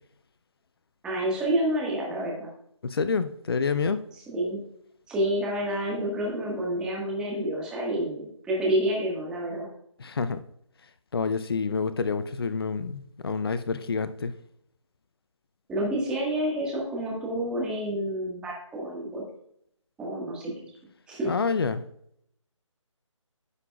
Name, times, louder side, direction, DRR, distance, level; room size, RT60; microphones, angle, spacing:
voice 1, 1.0-2.5 4.3-4.6 5.1-9.7 15.7-19.2 20.0-20.5 21.1-21.3, right 1 dB, 5° right, -3 dB, 1.6 m, -28 dB
voice 2, 2.8-4.0 10.0-10.4 11.1-14.3 21.2-21.8, left 5 dB, 50° left, 12 dB, 0.6 m, -28 dB
15.0 x 5.7 x 2.4 m, 0.72 s
figure-of-eight pair, 155°, 17 cm